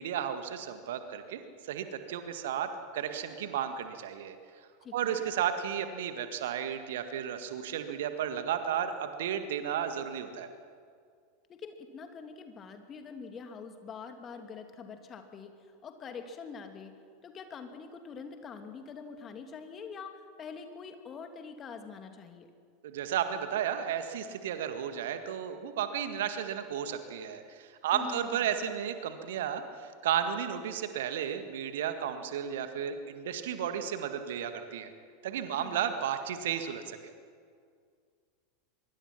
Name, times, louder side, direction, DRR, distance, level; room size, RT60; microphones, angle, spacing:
voice 1, 0.0-4.4 4.9-10.5 22.8-34.9 35.2-37.0, right 9 dB, 60° right, 8 dB, 1.8 m, -33 dB
voice 2, 4.8-5.3 11.5-15.5 15.8-17.0 17.2-22.5 27.9-28.4 35.5-35.9, left 5 dB, 30° left, 6 dB, 2.5 m, -45 dB
24.0 x 22.5 x 5.9 m, 2.1 s
figure-of-eight pair, 85°, 0 cm